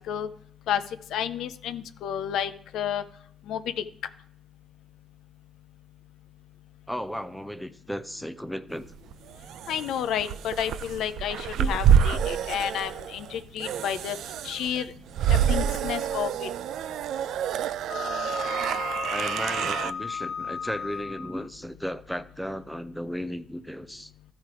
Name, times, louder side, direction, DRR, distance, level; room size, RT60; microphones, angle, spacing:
voice 1, 1.1-3.0 3.5-3.8 9.7-14.2 14.4-14.9 15.3-16.5, left 9 dB, 80° left, 11 dB, 0.5 m, -30 dB
voice 2, 6.9-8.9 11.6-11.7 19.1-24.1, equal, ahead, 12 dB, 0.4 m, -35 dB
sound 1, 8.9-19.9, right 9 dB, 80° right, 0.3 m, -27 dB
Wind instrument woodwind instrument, 17.9-21.5, left 6 dB, 55° left, 1.2 m, -34 dB
13.0 x 4.4 x 4.8 m, 0.65 s
cardioid pair, 90°, 0 cm